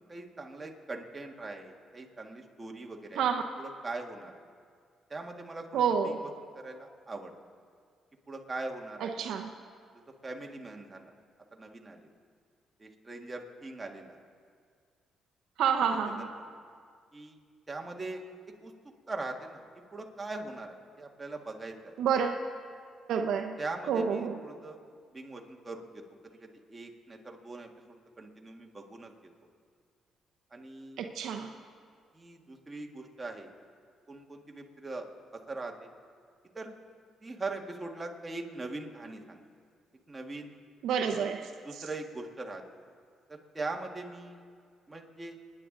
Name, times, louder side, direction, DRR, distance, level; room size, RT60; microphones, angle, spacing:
voice 1, 0.1-3.3 3.6-4.3 5.1-7.3 8.3-9.3 10.2-11.1 11.5-12.1 12.8-14.2 16.2-16.5 17.1-17.4 17.7-18.2 18.6-18.7 19.1-19.6 19.9-21.9 23.6-24.8 25.1-29.1 30.5-31.0 32.1-33.5 34.1-35.1 35.5-35.9 36.5-36.7 37.2-39.4 40.1-40.5 41.6-42.6 43.3-44.4 44.9-45.4, right 2 dB, 20° right, 1 dB, 1.7 m, -41 dB
voice 2, 5.7-6.2 9.0-9.5 15.6-16.3 22.0-22.4 23.1-23.5 23.9-24.4 31.0-31.5 40.8-41.5, right 7 dB, 80° right, 5 dB, 0.8 m, -28 dB
27.5 x 10.0 x 3.9 m, 2.1 s
cardioid pair, 90°, 0 cm